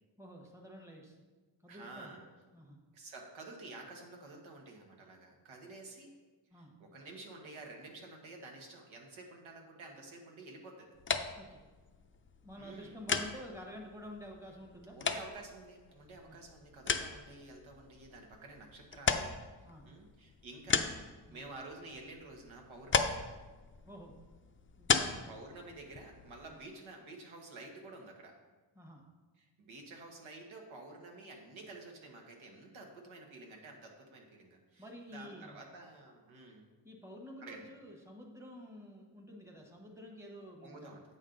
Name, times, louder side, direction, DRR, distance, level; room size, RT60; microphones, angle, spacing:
voice 1, 0.2-1.2 1.6-2.1 2.5-2.8 6.5-6.7 11.4-11.6 12.4-15.0 16.3-16.4 19.6-20.0 21.3-21.4 23.9-24.2 24.8-25.4 26.5-26.6 28.7-29.0 34.8-35.6 36.8-41.0, equal, 5° right, 1 dB, 1.1 m, -50 dB
voice 2, 1.7-2.2 2.9-6.1 6.5-10.9 12.6-13.0 14.9-19.3 19.8-23.1 25.3-28.3 29.4-36.6 37.4-37.6 40.6-41.0, right 2 dB, 90° right, 1 dB, 1.4 m, -50 dB
sound 1, 10.9-26.6, left 5 dB, 30° left, 0.4 m, -37 dB
8.4 x 5.4 x 3.8 m, 1.3 s
wide cardioid pair, 115°, 46 cm